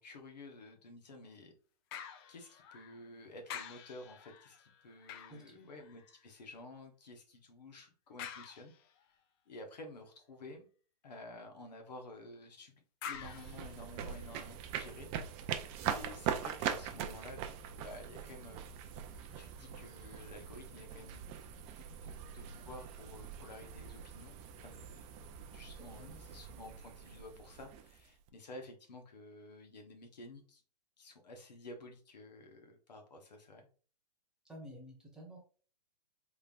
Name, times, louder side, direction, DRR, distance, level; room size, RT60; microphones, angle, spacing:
voice 1, 0.0-1.5 2.3-8.7 9.1-9.2 9.5-10.7 11.0-15.1 15.8-17.4 17.8-18.6 19.4-21.3 21.7-24.4 24.6-30.6 31.0-33.7, left 2 dB, 80° left, 4 dB, 1.0 m, -52 dB
sound 1, 1.9-3.1 3.5-6.3 8.2-9.1 13.0-14.5 15.0-15.1, left 8 dB, 35° left, 0.4 m, -49 dB
voice 2, 5.3-5.7 14.0-14.1 26.0-26.2 34.5-35.4, equal, 5° right, -2 dB, 1.2 m, -51 dB
sound 2, 13.1-28.3, right 8 dB, 30° right, 0.4 m, -42 dB
3.8 x 3.3 x 2.4 m, 0.41 s
hypercardioid pair, 125°, 21 cm